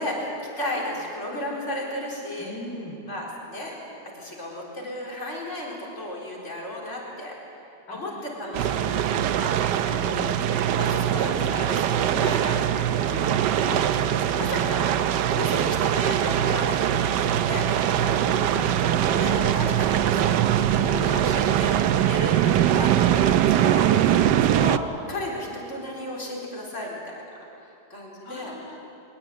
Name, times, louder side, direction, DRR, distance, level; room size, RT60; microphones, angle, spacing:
voice 1, 0.0-2.5 3.1-3.7 4.0-7.3 7.9-8.5 9.5-9.6 10.8-11.4 11.7-13.2 13.6-18.2 18.5-24.8 25.1-27.2 27.6-28.5, left 1 dB, 45° left, -3 dB, 4.6 m, -34 dB
voice 2, 2.4-3.0 7.9-12.3 12.9-13.4 15.5-16.0 18.2-18.8 22.5-22.8 24.3-24.7 28.2-28.8, left 1 dB, 80° left, -1 dB, 4.1 m, -39 dB
sound 1, 8.5-24.8, right 10 dB, 85° right, 1.3 m, -22 dB
23.5 x 18.0 x 9.5 m, 2.9 s
omnidirectional pair, 1.8 m